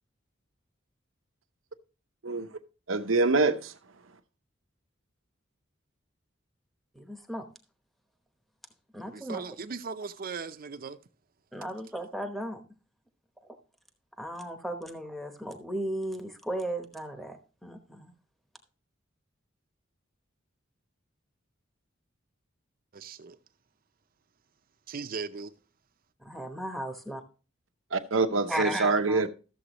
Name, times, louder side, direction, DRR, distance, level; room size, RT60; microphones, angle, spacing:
voice 1, 2.9-3.7 27.9-29.3, right 3 dB, 85° right, 0.8 m, -25 dB
voice 2, 7.0-7.5 8.9-9.4 11.5-12.6 14.2-17.4 17.6-18.1 26.2-27.2 28.5-29.3, right 1 dB, ahead, 0.9 m, -35 dB
voice 3, 9.1-11.0 22.9-23.4 24.9-25.5, right 5 dB, 50° right, 0.6 m, -38 dB
13.5 x 7.1 x 3.0 m
head